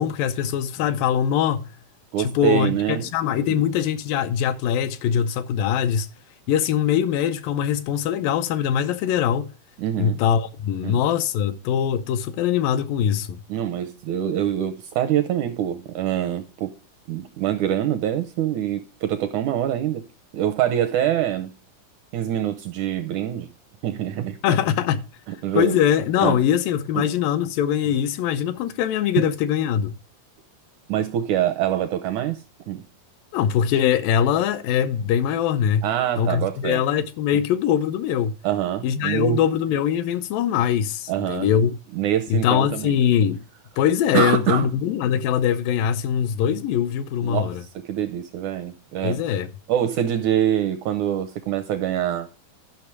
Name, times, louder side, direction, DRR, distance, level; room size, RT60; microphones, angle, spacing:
voice 1, 0.0-1.7 2.2-6.1 6.5-9.5 10.0-13.4 24.4-25.1 25.5-30.0 33.3-35.9 36.2-38.3 38.8-41.8 42.3-43.4 43.8-47.6 49.0-49.5, left 9 dB, 80° left, 2.4 m, -22 dB
voice 2, 2.1-3.1 3.5-3.6 9.8-10.2 10.8-11.0 13.5-16.7 17.1-20.0 20.3-21.5 22.1-23.5 23.8-24.6 25.4-25.8 26.2-26.4 26.9-27.1 30.9-32.8 35.8-36.8 38.4-39.4 41.1-41.5 41.9-42.9 44.1-44.7 47.2-49.2 49.7-52.3, right 11 dB, 80° right, 1.8 m, -25 dB
12.0 x 5.9 x 4.7 m
omnidirectional pair, 4.1 m